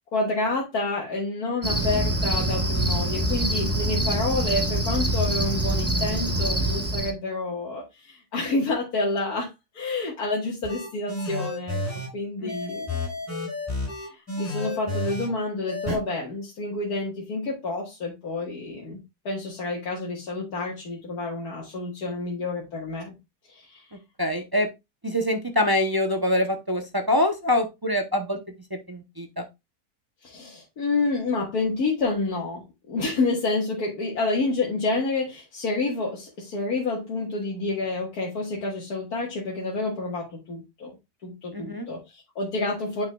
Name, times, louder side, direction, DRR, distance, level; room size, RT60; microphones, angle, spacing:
voice 1, 0.1-9.5 9.7-11.8 12.1-13.0 14.0-19.0 19.3-23.2 23.5-23.8 30.2-40.9 41.2-43.0, left 3 dB, 75° left, -3 dB, 2.0 m, -29 dB
Cricket, 1.6-7.1, right 1 dB, 10° right, 0.8 m, -25 dB
sound 1, 10.6-12.1 12.5-15.3 15.7-16.0, left 2 dB, 10° left, 4.8 m, -31 dB
voice 2, 24.2-24.7 25.0-28.4 28.9-29.4 41.5-41.9, left 1 dB, 30° right, 4 dB, 0.4 m, -25 dB
9.1 x 5.5 x 2.3 m, 0.22 s
omnidirectional pair, 1.7 m